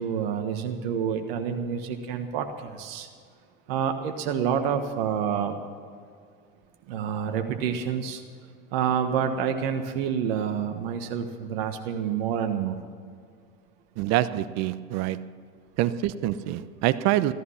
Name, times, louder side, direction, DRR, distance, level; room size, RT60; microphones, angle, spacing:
voice 1, 0.0-3.1 3.7-5.6 6.9-8.2 8.7-12.8, right 7 dB, 75° right, 6 dB, 1.4 m, -28 dB
voice 2, 14.0-15.3 15.8-17.3, right 14 dB, 60° right, 15 dB, 0.9 m, -26 dB
15.0 x 14.0 x 5.7 m, 2.2 s
hypercardioid pair, 90°, 30 cm